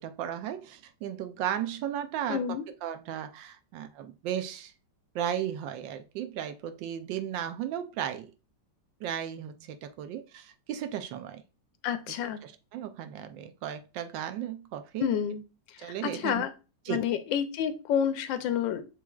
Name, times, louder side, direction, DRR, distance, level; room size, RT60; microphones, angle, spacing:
voice 1, 0.0-4.7 5.1-8.3 9.0-11.4 12.4-15.1 15.8-16.4 16.9-17.0, right 10 dB, 85° right, 1.3 m, -35 dB
voice 2, 2.3-2.6 11.8-12.4 15.0-15.4 15.8-16.5 16.9-18.9, left 8 dB, 85° left, 1.4 m, -29 dB
7.0 x 3.2 x 2.3 m
omnidirectional pair, 2.0 m